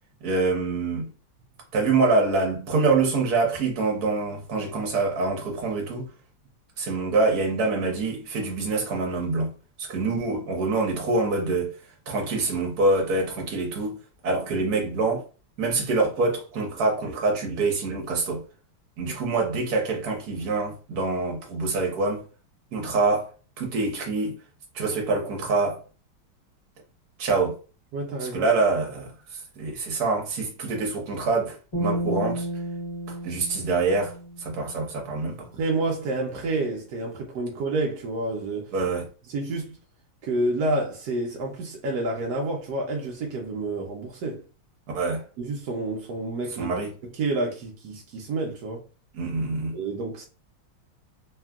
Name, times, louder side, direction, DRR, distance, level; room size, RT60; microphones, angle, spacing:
voice 1, 0.2-1.1 1.7-6.1 6.8-9.5 9.8-11.7 12.1-14.0 14.2-15.2 15.6-18.4 19.0-22.2 22.7-23.3 23.6-24.4 24.7-25.8 27.2-27.6 28.2-29.1 29.6-32.5 33.1-34.2 34.4-35.5 38.7-39.1 44.9-45.2 46.6-46.9 49.1-49.7, right 3 dB, 55° right, 1.2 m, -25 dB
voice 2, 27.9-28.5 35.5-38.7 39.3-39.8 40.2-44.4 45.4-46.7 47.1-48.8 49.7-50.2, right 2 dB, 75° right, 0.9 m, -29 dB
sound 1, 31.7-35.1, right 1 dB, 25° left, 0.7 m, -32 dB
3.4 x 2.3 x 2.2 m
omnidirectional pair, 2.3 m